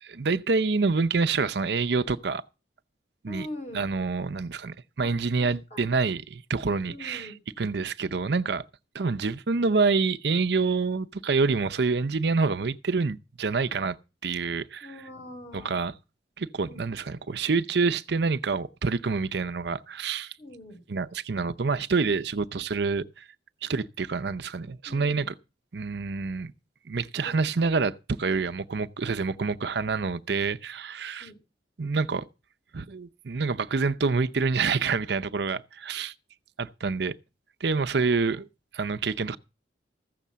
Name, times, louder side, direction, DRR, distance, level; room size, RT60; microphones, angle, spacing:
voice 1, 0.0-2.4 3.2-3.5 3.7-7.3 7.6-8.6 8.9-14.0 14.2-14.9 15.6-15.9 16.4-20.3 20.9-23.3 23.6-25.3 25.7-26.5 26.9-31.3 31.8-32.2 32.7-36.1 36.6-37.1 37.6-38.4 38.7-39.4, right 4 dB, 65° right, 0.6 m, -27 dB
voice 2, 3.3-3.9 5.0-5.1 5.7-5.9 6.9-7.4 14.8-15.8 16.6-16.9 20.4-20.8 24.8-25.3 26.9-27.4 31.2-31.4 38.0-38.4, left 1 dB, 40° left, 4.0 m, -43 dB
15.0 x 6.8 x 7.3 m
head